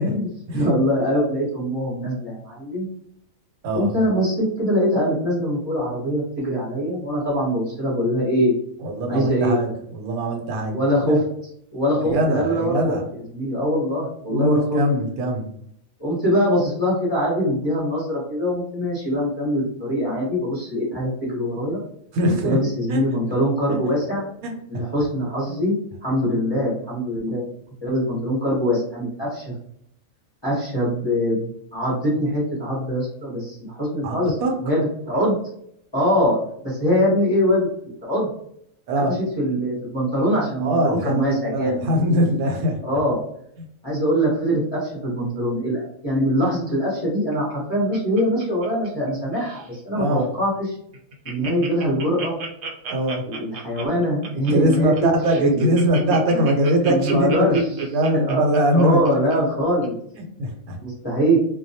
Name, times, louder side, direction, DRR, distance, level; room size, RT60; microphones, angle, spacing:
voice 1, 0.0-2.9 3.7-8.5 9.1-9.6 10.7-11.2 11.7-13.0 13.3-14.8 16.0-21.8 22.4-24.3 24.7-25.7 26.0-27.4 27.8-29.5 30.4-35.4 35.9-36.4 36.6-37.7 38.0-38.3 38.9-41.8 42.8-43.2 43.8-50.8 51.2-52.4 53.2-54.9 55.3-56.5 56.8-57.7 58.1-58.4 58.7-59.9 60.8-61.4, equal, 25° left, -6 dB, 0.6 m, -23 dB
voice 2, 3.6-3.9 8.8-11.2 12.0-13.0 14.3-15.5 22.1-22.6 22.9-23.0 23.7-23.8 24.4-24.8 34.0-34.6 38.9-39.1 40.6-42.8 49.9-50.3 52.9-53.3 54.5-57.6 57.9-59.1 59.4-59.5 60.1-60.8, right 1 dB, 85° right, 2 dB, 1.0 m, -22 dB
Laughter, 47.3-49.1 49.3-49.7 50.2-50.3 50.6-50.7 50.9-59.3 59.8-59.9, right 4 dB, 65° right, 0.7 m, -35 dB
2.2 x 2.2 x 2.6 m, 0.71 s
omnidirectional pair, 1.5 m